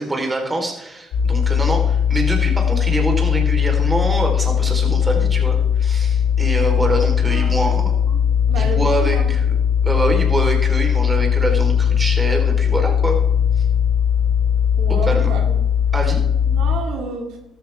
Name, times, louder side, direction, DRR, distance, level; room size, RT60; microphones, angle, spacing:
voice 1, 0.0-7.9 8.5-9.4 9.8-13.2 14.9-15.3 15.9-16.2, right 2 dB, 20° right, 2 dB, 4.2 m, -24 dB
sound 1, 1.1-16.8, left 8 dB, 85° left, 1.8 m, -18 dB
voice 2, 7.3-7.7 8.1-8.2 8.5-9.3 14.8-15.6 16.5-17.4, right 4 dB, 85° right, 2 dB, 2.5 m, -30 dB
14.0 x 12.5 x 3.6 m, 0.87 s
cardioid pair, 90°, 0 cm